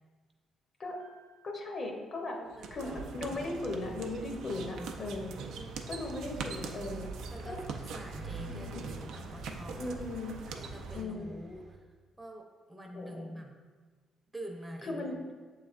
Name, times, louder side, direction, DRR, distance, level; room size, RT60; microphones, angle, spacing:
Piano, 1.0-3.1, right 4 dB, 85° left, 1.0 m, -67 dB
voice 1, 1.4-2.4 2.7-5.4 5.9-7.1 7.4-7.6 8.5-8.8 9.8-10.4 10.9-11.3 12.9-13.3 14.8-15.2, left 2 dB, 50° left, 2 dB, 0.7 m, -37 dB
voice 2, 2.3-3.4 5.3-5.8 7.3-10.0 10.4-13.5 14.3-15.3, equal, 15° right, 2 dB, 0.6 m, -47 dB
sound 1, 2.5-11.0, right 5 dB, 85° right, 0.4 m, -42 dB
sound 2, 7.2-11.8, right 2 dB, 55° right, 0.7 m, -47 dB
6.8 x 3.2 x 2.4 m, 1.4 s
cardioid pair, 90°, 0 cm